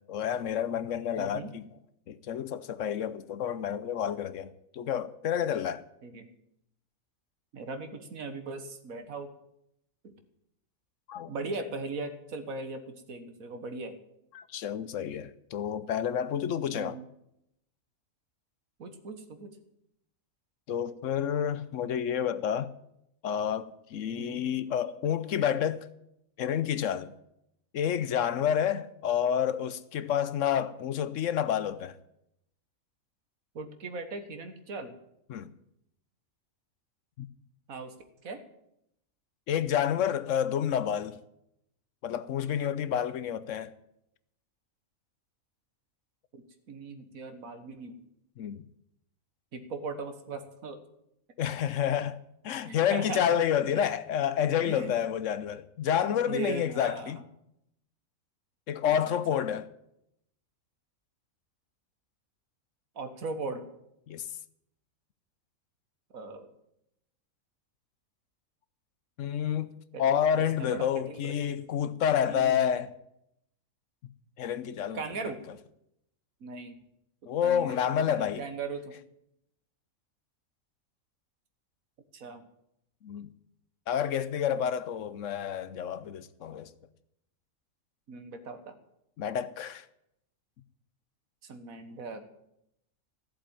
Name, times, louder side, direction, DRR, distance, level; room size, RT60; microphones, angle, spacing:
voice 1, 0.1-1.6 2.1-5.8 11.1-11.3 14.3-17.0 20.7-22.7 23.2-25.9 26.4-27.1 27.7-31.9 35.3-35.5 37.2-37.3 39.5-41.2 42.0-43.7 48.4-48.6 51.4-52.2 52.4-57.2 58.7-59.7 64.1-64.2 69.2-69.7 70.0-72.9 74.4-75.0 77.3-78.4 83.0-83.3 83.9-86.7 89.2-89.8, left 9 dB, 70° left, 1.0 m, -29 dB
voice 2, 1.2-1.5 6.0-6.3 7.5-9.3 10.0-10.1 11.3-13.9 16.7-17.0 18.8-19.5 24.2-24.4 33.6-34.9 37.7-37.9 38.2-38.4 46.3-46.4 46.7-48.0 49.5-50.8 52.6-53.2 53.7-53.8 54.7-54.9 56.0-57.2 58.9-59.4 63.0-63.6 66.1-66.5 69.9-71.3 72.3-72.8 74.9-75.4 76.4-76.8 77.4-79.0 82.1-82.4 88.1-88.7 91.4-92.2, right 3 dB, 80° right, 1.8 m, -39 dB
14.5 x 7.7 x 8.8 m
omnidirectional pair, 1.4 m